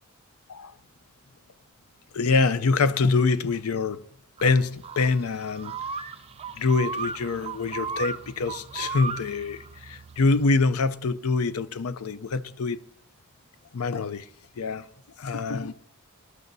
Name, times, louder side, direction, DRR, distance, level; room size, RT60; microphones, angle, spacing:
voice 1, 2.1-4.0 4.4-5.8 6.6-12.8 13.7-14.3 14.6-14.8 15.2-15.7, left 4 dB, 80° left, 0.5 m, -25 dB
sound 1, 4.4-10.5, right 5 dB, 25° right, 0.4 m, -36 dB
21.0 x 12.0 x 2.7 m
head